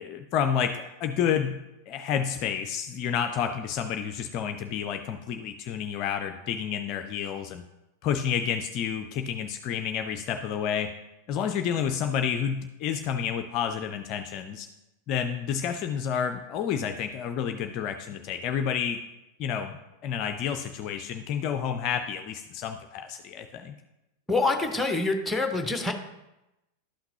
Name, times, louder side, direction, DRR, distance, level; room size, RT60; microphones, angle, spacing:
voice 1, 0.0-1.6 1.9-7.6 8.0-10.9 11.3-14.7 15.1-19.0 19.4-19.8 20.0-23.7, left 8 dB, 40° left, 6 dB, 0.4 m, -30 dB
voice 2, 24.3-25.9, left 3 dB, 5° left, 6 dB, 0.8 m, -26 dB
11.5 x 5.8 x 2.9 m, 0.95 s
figure-of-eight pair, 90°, 0 cm